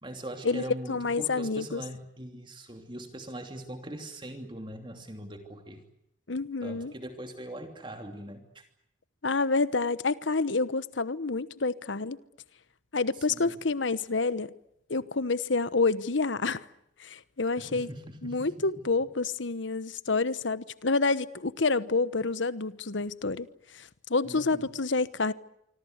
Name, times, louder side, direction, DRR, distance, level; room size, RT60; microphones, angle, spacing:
voice 1, 0.0-5.8 6.6-8.6 13.1-13.6 17.6-18.7 24.2-24.7, right 1 dB, 25° right, 2.9 m, -41 dB
voice 2, 0.9-1.8 6.3-6.9 9.2-12.2 12.9-14.5 14.9-16.6 17.0-17.9 18.2-23.5 23.7-25.3, left 3 dB, 75° left, 1.1 m, -28 dB
26.0 x 25.5 x 8.1 m
head